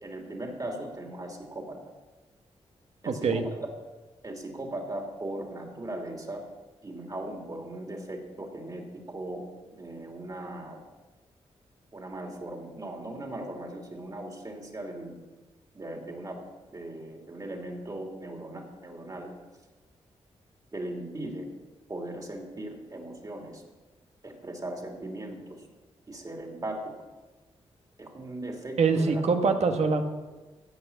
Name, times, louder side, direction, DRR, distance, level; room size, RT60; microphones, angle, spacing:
voice 1, 0.0-1.8 3.0-3.5 4.2-6.4 6.8-9.5 9.7-10.8 11.9-15.1 15.7-16.4 16.7-19.3 20.7-21.5 21.9-23.6 24.2-25.7 26.1-26.9 28.0-29.2, right 1 dB, 35° right, 1 dB, 2.9 m, -38 dB
voice 2, 3.1-3.4 28.8-30.0, right 4 dB, 70° right, 5 dB, 1.4 m, -24 dB
15.5 x 5.7 x 8.5 m, 1.2 s
cardioid pair, 65°, 11 cm